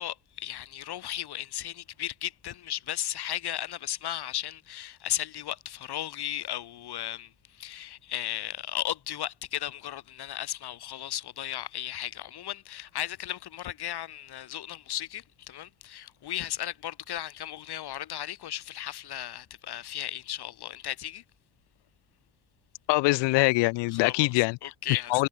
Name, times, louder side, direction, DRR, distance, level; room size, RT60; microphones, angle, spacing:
voice 1, 0.0-21.2 23.9-24.3 24.6-25.3, left 12 dB, 65° left, 4.9 m, -35 dB
voice 2, 22.9-24.5 24.9-25.3, left 24 dB, 80° left, 0.6 m, -23 dB
cardioid pair, 85°, 42 cm